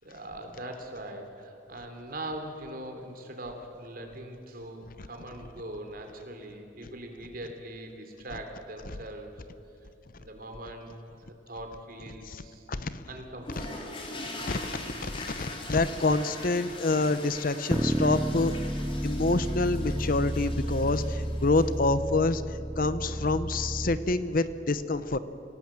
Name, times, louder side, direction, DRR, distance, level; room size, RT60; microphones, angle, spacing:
voice 1, 0.0-9.4 10.2-10.9 11.2-12.7 13.1-13.9, right 1 dB, 50° right, 4 dB, 3.2 m, -41 dB
voice 2, 12.7-13.0 13.6-13.7 14.5-18.6 19.0-22.4 22.8-25.2, left 2 dB, 45° left, 13 dB, 0.8 m, -27 dB
sound 1, 13.4-21.9, left 2 dB, 25° left, 3.2 m, -42 dB
sound 2, 17.7-24.0, equal, 10° right, 0.6 m, -31 dB
27.5 x 17.5 x 7.6 m, 2.9 s
head